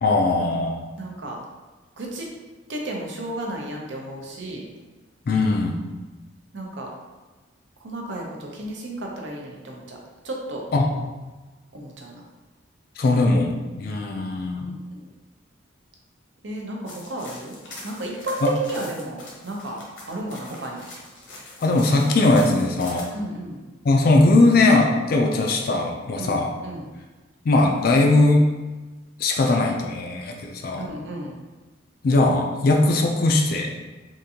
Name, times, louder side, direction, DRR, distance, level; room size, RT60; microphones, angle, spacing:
voice 1, 0.0-0.8 5.3-5.8 10.7-11.0 13.0-13.5 13.8-14.7 18.4-18.5 21.6-23.1 23.8-26.5 27.4-28.5 29.2-30.9 32.0-33.7, left 2 dB, 50° left, 2 dB, 0.3 m, -19 dB
voice 2, 1.0-1.4 2.0-2.3 2.7-4.6 6.5-6.9 7.8-10.0 10.2-10.6 11.7-12.2 14.6-15.1 16.4-17.6 17.8-19.8 20.1-20.8 23.1-23.6 26.2-26.9 30.8-31.4, right 1 dB, 70° right, -1 dB, 0.6 m, -33 dB
sound 1, 16.9-23.0, left 2 dB, 80° left, 0.9 m, -42 dB
3.6 x 2.6 x 2.7 m, 1.2 s
head